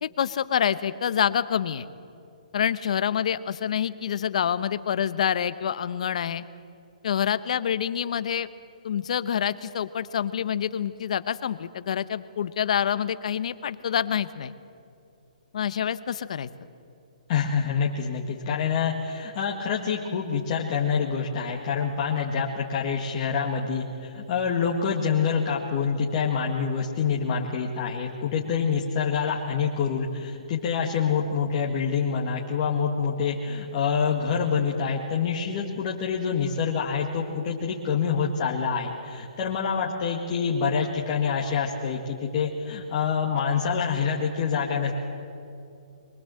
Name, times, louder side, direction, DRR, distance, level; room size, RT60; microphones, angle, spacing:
voice 1, 0.0-1.9 2.5-6.4 7.0-8.5 8.8-14.5 15.5-16.5, left 8 dB, 60° left, 14 dB, 1.0 m, -27 dB
voice 2, 17.3-45.0, left 6 dB, 40° left, -3 dB, 2.0 m, -26 dB
22.5 x 20.5 x 7.8 m, 2.6 s
hypercardioid pair, 150°, 4 cm